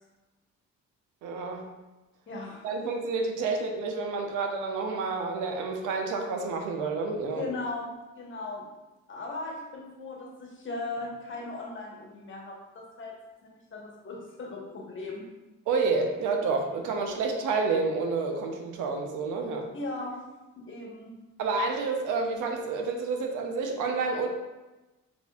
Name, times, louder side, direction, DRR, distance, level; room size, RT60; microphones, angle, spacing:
voice 1, 1.2-1.7 2.6-7.5 15.7-19.7 21.4-24.3, right 4 dB, 90° right, 3 dB, 0.6 m, -29 dB
voice 2, 2.3-2.7 7.3-7.9 8.2-8.7 9.1-15.2 19.7-20.2 20.6-21.1, left 2 dB, 40° left, -2 dB, 1.2 m, -38 dB
6.9 x 2.5 x 2.3 m, 1.1 s
cardioid pair, 90°, 30 cm